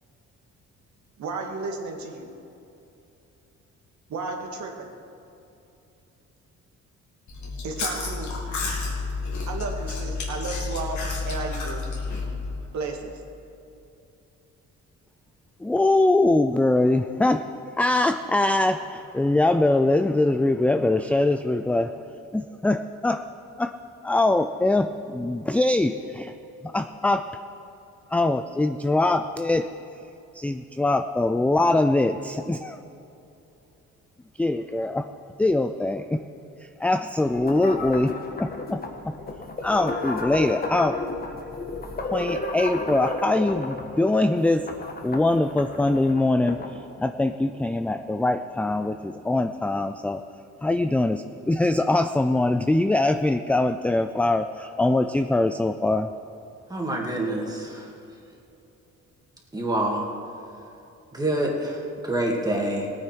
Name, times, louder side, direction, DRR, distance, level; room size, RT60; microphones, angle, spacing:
voice 1, 1.2-2.3 4.1-4.9 7.6-8.4 9.5-11.0 11.3-11.8 12.7-13.1, right 4 dB, 70° right, 2 dB, 2.0 m, -33 dB
Chewing mastication, 7.3-12.6, left 4 dB, 70° left, 2.7 m, -30 dB
voice 2, 15.6-22.1 22.3-23.2 23.6-23.7 24.0-26.3 26.6-27.3 28.1-29.7 30.3-32.8 34.4-35.1 35.4-36.2 36.6-39.2 39.6-41.0 42.0-44.7 45.0-50.2 50.6-56.1, left 2 dB, 5° left, 8 dB, 0.3 m, -23 dB
sound 1, 37.2-46.8, left 3 dB, 30° left, 1.5 m, -33 dB
voice 3, 56.7-57.9 59.5-60.0 61.1-62.9, right 1 dB, 15° right, -1 dB, 2.5 m, -26 dB
17.5 x 9.4 x 4.6 m, 2.8 s
cardioid pair, 90°, 30 cm